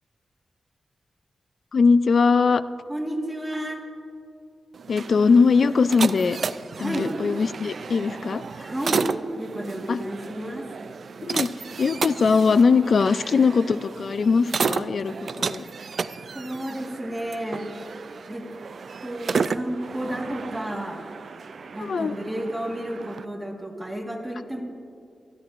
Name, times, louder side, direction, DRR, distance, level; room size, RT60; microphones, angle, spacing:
voice 1, 1.7-2.6 4.9-6.4 6.8-8.4 9.9-10.0 11.2-11.5 11.8-15.6 21.8-22.1, left 5 dB, 55° left, 14 dB, 0.4 m, -20 dB
voice 2, 2.9-3.8 6.8-7.1 8.6-9.1 9.3-10.7 16.3-17.7 18.3-18.5 19.0-21.0 21.7-24.6, right 1 dB, 10° right, 0 dB, 1.5 m, -31 dB
sound 1, 4.7-23.2, right 5 dB, 55° right, 0.3 m, -33 dB
26.0 x 10.5 x 2.5 m, 2.5 s
wide cardioid pair, 140°, 0 cm